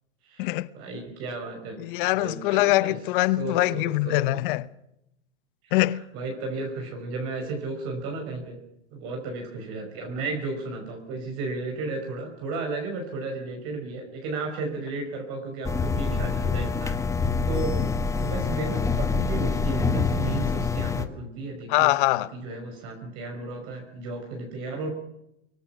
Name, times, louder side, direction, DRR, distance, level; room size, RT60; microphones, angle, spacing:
voice 1, 0.2-1.8 2.1-3.0 3.4-4.4 5.6-5.7 6.1-8.6 8.9-17.0 17.5-17.9 18.2-21.9 22.3-24.9, right 3 dB, 40° right, 5.9 m, -34 dB
voice 2, 1.8-4.7 5.7-6.0 21.7-22.3, left 18 dB, 45° left, 1.0 m, -23 dB
sound 1, 15.6-21.1, left 4 dB, 10° left, 1.2 m, -26 dB
24.5 x 22.5 x 6.0 m
hypercardioid pair, 140°, 35 cm